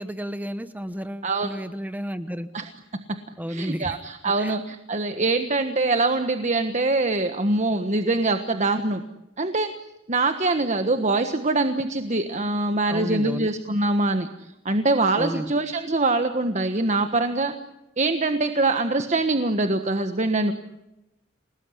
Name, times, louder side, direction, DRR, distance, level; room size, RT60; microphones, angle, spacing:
voice 1, 0.0-2.5 3.4-3.9 4.4-4.5 12.9-13.5 15.2-15.5, equal, 10° right, 11 dB, 1.0 m, -32 dB
voice 2, 3.5-9.0 9.4-9.7 10.1-14.3 14.6-17.5 18.0-20.5, right 2 dB, 35° right, 7 dB, 1.4 m, -23 dB
29.5 x 19.0 x 9.9 m, 0.93 s
head